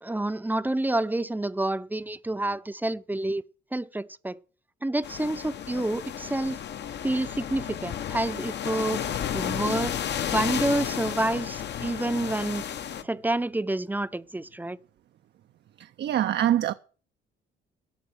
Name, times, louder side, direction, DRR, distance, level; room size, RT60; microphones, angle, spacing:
voice 1, 0.0-3.4 3.7-4.4 4.8-6.6 7.0-9.0 9.3-10.0 10.3-12.6 13.0-14.8, right 2 dB, 10° right, 0.6 m, -28 dB
sound 1, 5.0-13.0, left 9 dB, 60° left, 1.0 m, -32 dB
voice 2, 15.8-16.7, right 11 dB, 60° right, 0.5 m, -24 dB
12.5 x 7.1 x 9.0 m
cardioid pair, 90°, 20 cm